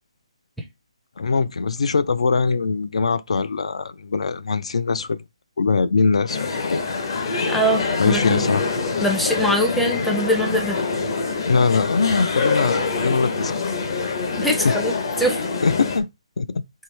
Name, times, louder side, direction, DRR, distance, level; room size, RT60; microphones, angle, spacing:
voice 1, 1.2-5.2 5.6-6.8 8.0-8.7 11.5-13.7 14.6-14.8 15.6-16.1 16.4-16.6, left 4 dB, 75° left, 0.4 m, -22 dB
sound 1, 6.3-16.0, left 4 dB, 45° left, 0.8 m, -25 dB
voice 2, 7.5-8.4 9.0-10.8 14.4-14.9 15.2-15.4, equal, ahead, 0.5 m, -22 dB
4.5 x 3.2 x 3.2 m
hypercardioid pair, 170°, 3 cm